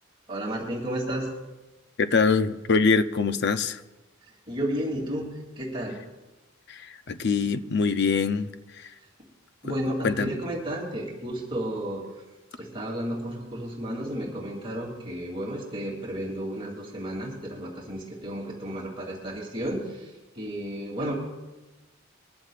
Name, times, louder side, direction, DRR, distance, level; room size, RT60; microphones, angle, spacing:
voice 1, 0.3-1.3 4.5-6.0 9.6-12.0 12.6-21.1, right 1 dB, 25° right, -3 dB, 2.9 m, -32 dB
voice 2, 2.0-3.8 6.7-8.5 8.8-8.9 9.6-9.7 10.0-10.3, left 5 dB, 55° left, 10 dB, 0.6 m, -24 dB
22.0 x 14.5 x 2.5 m, 1.1 s
head